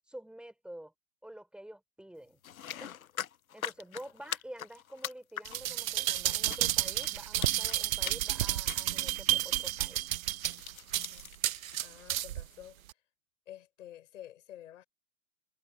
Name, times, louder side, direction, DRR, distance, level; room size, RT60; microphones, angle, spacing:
voice 1, 0.1-0.9 1.2-2.4 2.8-2.9 3.5-10.0, right 1 dB, ahead, 5.0 m, -48 dB
sound 1, 2.4-6.0 6.5-7.1 7.4-7.8 8.0-8.4 8.7-8.9 9.2-9.4 10.4-11.9, left 10 dB, 80° left, 1.1 m, -41 dB
voice 2, 3.8-4.1 10.9-11.3 11.8-13.0 13.5-14.9, left 12 dB, 60° left, 7.7 m, -51 dB
sound 2, 5.5-12.5 12.9-13.0, right 13 dB, 75° right, 0.6 m, -31 dB
hypercardioid pair, 125°, 41 cm